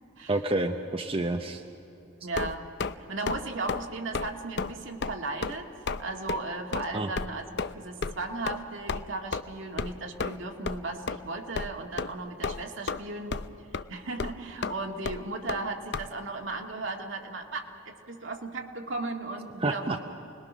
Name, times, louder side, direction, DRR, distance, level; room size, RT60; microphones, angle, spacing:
voice 1, 0.3-1.6 6.9-7.1 19.6-20.0, right 2 dB, 25° right, 5 dB, 0.7 m, -29 dB
voice 2, 2.2-2.7 3.1-7.5 7.8-13.4 13.9-20.0, right 3 dB, 65° right, 3 dB, 1.9 m, -36 dB
sound 1, 2.3-2.9 3.3-3.4 3.7-3.9 4.1-4.3 4.6-4.7 5.0-5.2 5.4-5.6 5.9-6.0 6.3-6.4 6.7-6.9 7.2-7.3 7.6-7.7 8.0-8.1 8.5-8.6 8.9-9.0 9.3-9.4 9.8-9.9 10.2-10.4 10.7-10.8 11.1-11.2 11.6-11.7 12.0-12.1 12.4-13.0 13.3-13.5 13.7-13.8 14.2-14.3 14.6-14.7 15.0-15.2 15.5-15.6 15.9-16.1, left 4 dB, 55° left, 0.6 m, -31 dB
29.0 x 21.0 x 6.2 m, 3.0 s
head